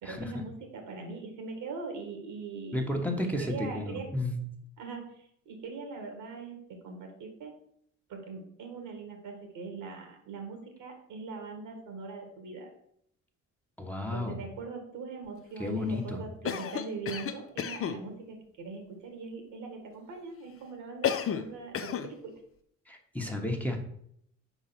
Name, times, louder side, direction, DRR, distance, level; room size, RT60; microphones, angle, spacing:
voice 1, 0.0-4.1 4.8-7.5 8.1-12.7 14.1-22.3, right 4 dB, 85° right, 3 dB, 1.8 m, -41 dB
voice 2, 2.7-4.4 13.8-14.4 15.6-16.2 22.9-23.8, left 1 dB, 5° left, 2 dB, 1.0 m, -32 dB
Cough, 16.4-18.0 21.0-21.5 21.7-22.1, left 8 dB, 50° left, 0.6 m, -32 dB
4.7 x 4.0 x 5.8 m, 0.70 s
cardioid pair, 90°, 30 cm